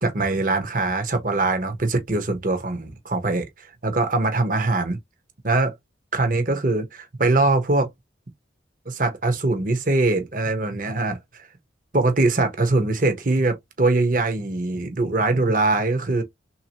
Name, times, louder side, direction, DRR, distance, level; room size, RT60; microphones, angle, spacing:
voice 1, 0.0-3.5 3.8-5.0 5.4-5.7 6.1-7.9 8.9-11.2 11.9-16.2, right 2 dB, 45° right, 1.0 m, -22 dB
3.4 x 2.8 x 2.8 m
head